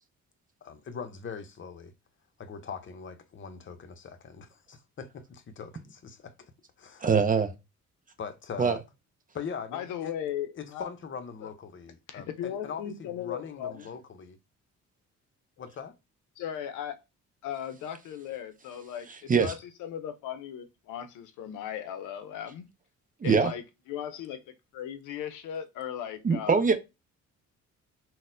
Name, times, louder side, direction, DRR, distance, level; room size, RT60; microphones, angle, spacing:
voice 1, 0.6-1.9 2.4-6.3 6.8-7.1 8.2-8.8 9.3-10.1 10.6-14.4 15.6-15.9, left 6 dB, 40° left, 0.7 m, -41 dB
voice 2, 7.0-7.5 8.6-8.8 19.3-19.5 23.2-23.5 26.2-26.7, right 5 dB, 30° right, 0.5 m, -23 dB
voice 3, 9.7-10.9 12.1-13.9 16.4-17.0 17.4-22.7 23.2-23.6 23.9-24.4 24.7-26.6, left 9 dB, 90° left, 0.6 m, -37 dB
4.0 x 2.1 x 2.5 m
cardioid pair, 90°, 30 cm